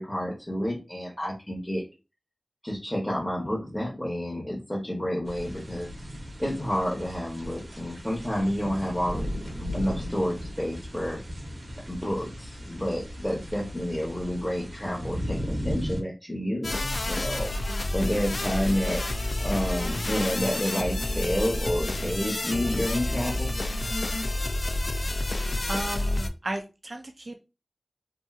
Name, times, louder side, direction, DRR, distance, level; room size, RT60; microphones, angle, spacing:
voice 1, 0.0-1.8 2.6-5.9 6.4-9.3 9.7-11.2 11.9-19.0 19.4-23.5, equal, 10° left, -3 dB, 0.7 m, -30 dB
sound 1, 5.2-16.0, equal, 75° right, 0.8 m, -36 dB
sound 2, 16.6-26.3, left 1 dB, 60° left, 0.3 m, -29 dB
voice 2, 25.0-25.3 25.7-27.4, right 1 dB, 55° right, 4 dB, 0.4 m, -35 dB
2.8 x 2.6 x 2.3 m, 0.29 s
wide cardioid pair, 55°, 0 cm